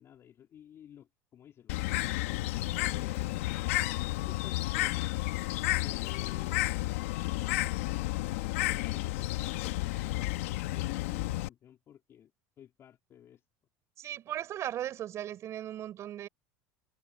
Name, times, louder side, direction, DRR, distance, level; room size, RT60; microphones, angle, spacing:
voice 1, 0.0-3.6 4.1-5.2 5.7-6.9 8.5-12.3 12.6-13.4, left 10 dB, 40° left, 3.8 m, -54 dB
Bird, 1.7-11.5, left 18 dB, 85° left, 1.4 m, -32 dB
voice 2, 14.0-16.3, right 11 dB, 45° right, 4.1 m, -37 dB
supercardioid pair, 125°, 7 cm